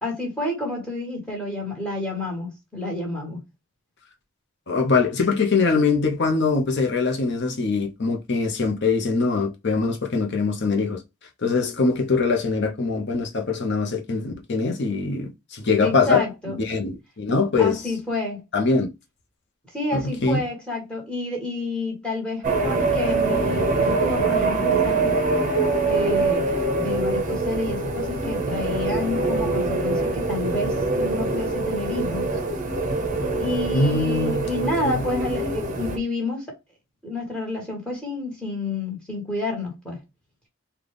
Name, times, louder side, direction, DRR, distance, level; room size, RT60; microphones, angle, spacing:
voice 1, 0.0-3.4 15.8-16.6 17.6-18.4 19.7-25.2 25.9-32.3 33.4-36.6 37.0-40.0, left 2 dB, 5° left, 1.4 m, -29 dB
voice 2, 4.7-11.0 11.4-16.3 16.6-17.8 18.5-18.9 19.9-20.4 33.7-35.0, left 4 dB, 50° left, 0.7 m, -23 dB
sound 1, 22.4-36.0, right 3 dB, 35° right, 0.7 m, -24 dB
3.8 x 2.3 x 3.3 m
head